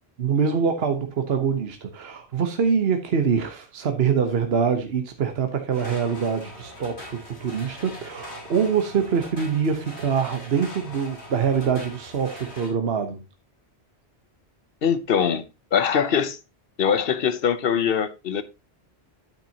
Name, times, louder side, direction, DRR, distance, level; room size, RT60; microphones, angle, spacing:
voice 1, 0.2-13.2, right 6 dB, 70° right, 1.2 m, -24 dB
sound 1, 5.7-12.7, left 1 dB, 80° left, 3.4 m, -41 dB
voice 2, 14.8-15.4 15.7-16.4 16.8-18.4, left 7 dB, 60° left, 0.9 m, -22 dB
9.1 x 8.7 x 2.8 m
omnidirectional pair, 1.1 m